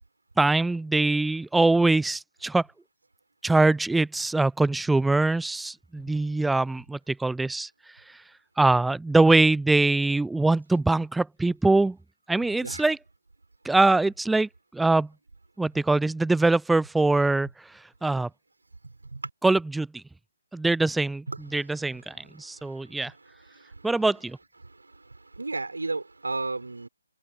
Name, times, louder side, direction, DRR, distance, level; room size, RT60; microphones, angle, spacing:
voice 1, 0.4-2.6 3.4-7.7 8.6-12.0 12.3-13.0 13.6-15.1 15.6-17.5 18.0-18.3 19.4-20.0 20.5-21.2 21.5-23.1 23.8-24.4, right 2 dB, 5° right, 0.6 m, -23 dB
voice 2, 18.8-19.2 21.3-21.4 22.4-22.5 23.5-23.9 25.4-26.9, right 3 dB, 70° right, 6.1 m, -33 dB
open air
figure-of-eight pair, 145°, 0 cm